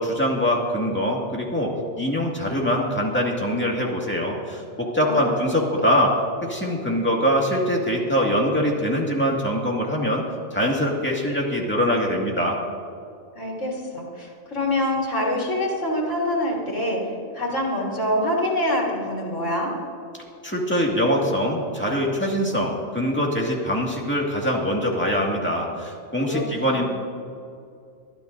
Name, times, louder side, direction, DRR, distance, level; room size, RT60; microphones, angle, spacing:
voice 1, 0.0-1.7 2.0-6.1 6.4-10.2 10.5-12.6 20.4-26.9, equal, 10° left, -2 dB, 2.0 m, -23 dB
voice 2, 5.0-5.4 5.8-6.0 13.4-17.0 17.3-19.7 26.3-26.9, left 1 dB, 75° left, -4 dB, 3.5 m, -25 dB
22.5 x 12.5 x 2.7 m, 2.4 s
omnidirectional pair, 1.3 m